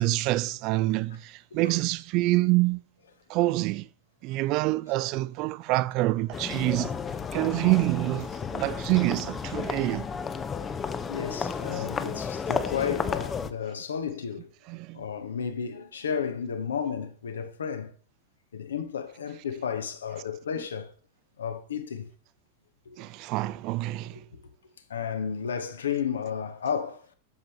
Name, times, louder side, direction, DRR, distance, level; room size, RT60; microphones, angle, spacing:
voice 1, 0.0-2.8 3.3-3.9 4.2-6.9 7.3-10.1 11.7-11.9 14.7-15.0 23.0-24.2, right 19 dB, 40° right, 0.3 m, -26 dB
sound 1, 6.3-13.5, left 6 dB, 20° left, 0.5 m, -32 dB
voice 2, 11.1-14.5 14.9-17.9 18.5-20.9 21.4-22.1 22.9-23.0 24.3-24.4 24.9-27.0, left 7 dB, 65° left, 0.9 m, -32 dB
8.4 x 6.9 x 3.4 m
figure-of-eight pair, 90°, 0 cm